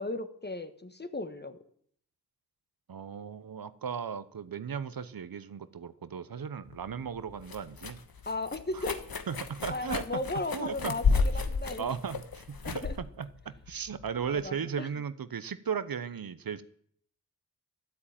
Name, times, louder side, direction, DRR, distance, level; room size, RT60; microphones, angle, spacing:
voice 1, 0.0-1.6 8.2-9.0 9.7-11.9 12.6-12.9 14.3-14.9, left 2 dB, 30° left, 9 dB, 1.3 m, -36 dB
voice 2, 2.9-8.0 8.7-8.8 9.3-10.2 10.5-11.2 11.8-16.6, right 7 dB, 70° right, 14 dB, 0.8 m, -36 dB
sound 1, 6.7-14.5, left 4 dB, 75° left, 1.3 m, -33 dB
13.0 x 8.5 x 9.0 m, 0.65 s
wide cardioid pair, 85°, 36 cm